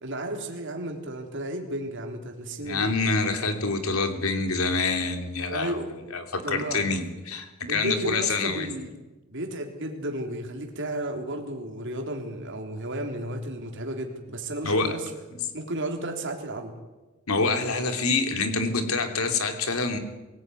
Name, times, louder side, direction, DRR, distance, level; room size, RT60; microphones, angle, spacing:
voice 1, 0.0-3.0 5.5-5.9 6.4-6.8 7.7-8.9 9.3-15.1 15.5-16.7, right 1 dB, 55° right, 2 dB, 3.5 m, -33 dB
voice 2, 2.6-5.8 6.1-8.7 14.6-14.9 17.3-20.0, left 3 dB, 80° left, 6 dB, 3.1 m, -26 dB
23.5 x 16.5 x 9.5 m, 1.2 s
head